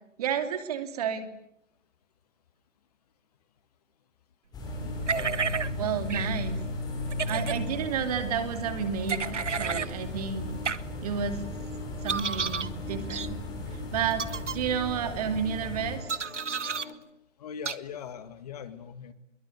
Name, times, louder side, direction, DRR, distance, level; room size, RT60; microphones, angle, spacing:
voice 1, 0.2-1.3 5.8-6.6 7.3-10.6 11.0-11.4 12.0-13.4 13.9-14.3 14.5-16.1, right 7 dB, 30° right, 9 dB, 2.8 m, -31 dB
sound 1, 4.5-16.0, left 1 dB, 10° left, 6.4 m, -36 dB
sound 2, 4.6-16.9, left 3 dB, 50° left, 4.9 m, -45 dB
voice 2, 4.8-5.5 5.8-6.4 17.4-19.1, left 7 dB, 30° left, 13 dB, 2.0 m, -42 dB
sound 3, 5.1-5.7 6.1-6.3 7.1-7.6 9.1-9.9 10.6-10.8 12.1-12.7 13.1-13.3 14.1-14.5 16.1-16.9 17.6-17.8, right 5 dB, 70° right, 1.7 m, -31 dB
26.5 x 23.0 x 9.5 m, 0.77 s
figure-of-eight pair, 150°, 38 cm